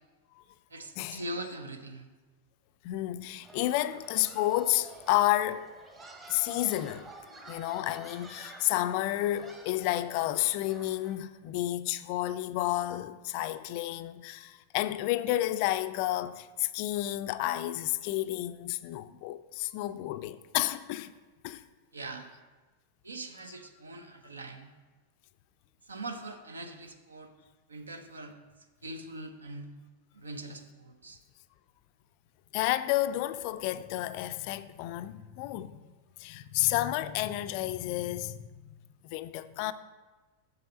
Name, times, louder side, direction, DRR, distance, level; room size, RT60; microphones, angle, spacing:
voice 1, 0.7-2.1 21.9-22.3 23.0-24.7 25.9-27.3 27.7-28.3 28.8-29.7 30.1-31.2, right 2 dB, 75° right, 0.8 m, -42 dB
voice 2, 2.8-5.7 6.3-7.1 7.5-21.1 21.4-21.6 32.5-35.8 36.2-38.4 39.0-39.7, left 15 dB, 45° left, 0.3 m, -31 dB
sound 1, 3.4-11.2, right 2 dB, 20° right, 1.3 m, -50 dB
7.6 x 6.9 x 4.2 m
figure-of-eight pair, 90°, 0 cm